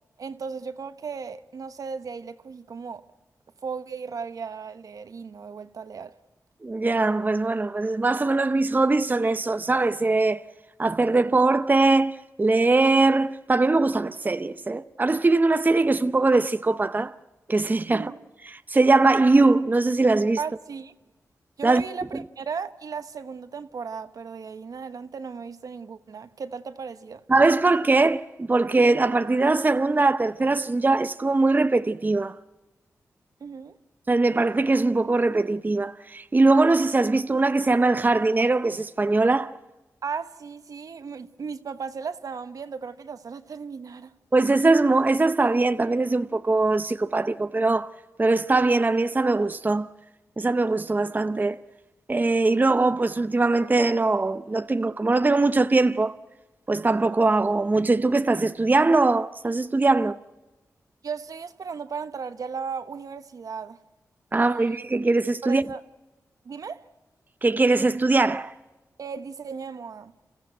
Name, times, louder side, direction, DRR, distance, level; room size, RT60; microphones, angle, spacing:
voice 1, 0.2-3.0 3.6-6.1 17.9-18.2 20.4-20.9 21.6-27.2 33.4-33.8 40.0-44.1 61.0-63.8 64.3-64.8 65.4-65.8 66.4-66.9 69.0-70.1, right 5 dB, 70° right, 1.1 m, -36 dB
voice 2, 6.6-10.4 10.8-17.1 17.5-18.1 18.5-20.4 21.6-21.8 27.3-32.4 34.1-39.5 44.3-47.9 48.2-49.9 50.4-51.6 52.1-56.1 56.7-60.2 64.3-65.6 67.4-68.5, right 3 dB, 30° right, 0.7 m, -21 dB
28.5 x 14.5 x 9.2 m
cardioid pair, 60°, 6 cm